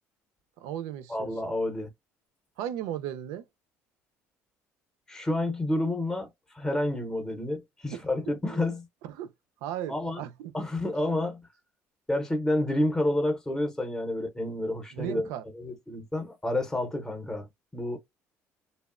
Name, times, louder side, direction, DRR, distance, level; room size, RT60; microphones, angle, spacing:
voice 1, 0.6-1.3 2.6-3.4 7.9-8.0 8.5-8.6 9.0-9.3 9.6-10.5 14.9-15.4, right 11 dB, 90° right, 0.4 m, -36 dB
voice 2, 1.1-1.9 5.1-6.3 6.5-8.9 9.9-10.2 10.5-11.4 12.1-15.3 15.5-18.0, left 1 dB, 10° left, 0.6 m, -29 dB
2.8 x 2.0 x 2.4 m
cardioid pair, 135°, 5 cm